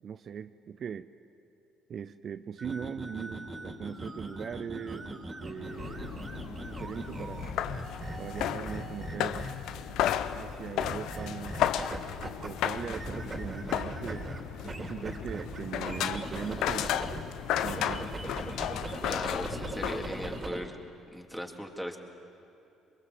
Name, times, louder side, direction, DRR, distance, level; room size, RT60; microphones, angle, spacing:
voice 1, 0.0-1.1 1.9-7.5 8.2-11.6 12.2-14.3 14.8-16.9 17.6-18.1, right 7 dB, 55° right, 12 dB, 0.6 m, -40 dB
sound 1, 2.6-9.8 10.8-12.5 12.8-17.2 17.5-20.6, right 1 dB, 35° right, 3.1 m, -40 dB
sound 2, 5.6-20.5, left 10 dB, 70° left, 0.8 m, -34 dB
voice 2, 19.1-20.8 21.1-22.0, equal, 5° left, 2 dB, 3.2 m, -38 dB
23.5 x 22.0 x 7.9 m, 2.7 s
hypercardioid pair, 60°, 0 cm